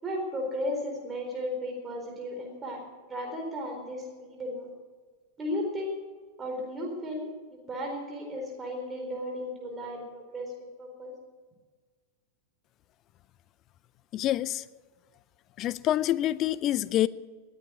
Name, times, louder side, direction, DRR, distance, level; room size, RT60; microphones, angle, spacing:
voice 1, 0.0-2.8 3.1-4.7 5.4-6.0 6.4-10.5 10.8-11.1, left 1 dB, 20° right, 1 dB, 4.3 m, -35 dB
voice 2, 14.1-14.6 15.6-17.1, left 13 dB, 35° left, 19 dB, 0.5 m, -26 dB
20.5 x 9.8 x 6.2 m, 1.4 s
figure-of-eight pair, 90°, 0 cm